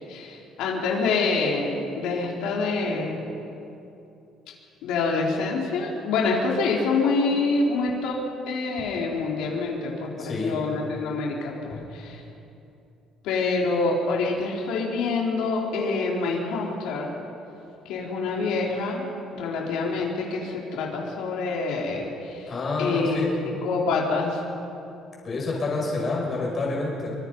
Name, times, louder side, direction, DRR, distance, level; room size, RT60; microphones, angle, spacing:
voice 1, 0.1-3.2 4.8-8.2 8.5-12.2 13.2-17.1 17.9-19.1 19.3-22.5 22.8-24.4, left 3 dB, 75° left, -2 dB, 4.0 m, -26 dB
voice 2, 10.2-10.6 11.7-11.8 22.5-23.3 25.2-27.1, left 3 dB, 25° left, -2 dB, 5.9 m, -28 dB
26.5 x 25.0 x 5.5 m, 2.8 s
cardioid pair, 175°, 0 cm